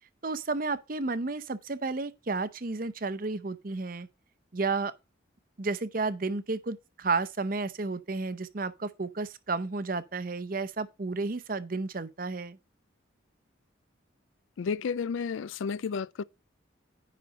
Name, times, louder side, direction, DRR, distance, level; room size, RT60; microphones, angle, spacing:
voice 1, 0.2-4.1 4.5-4.9 5.6-12.6, right 3 dB, 45° right, 0.7 m, -32 dB
voice 2, 14.6-16.2, left 5 dB, 80° left, 0.4 m, -32 dB
10.0 x 4.2 x 5.2 m
head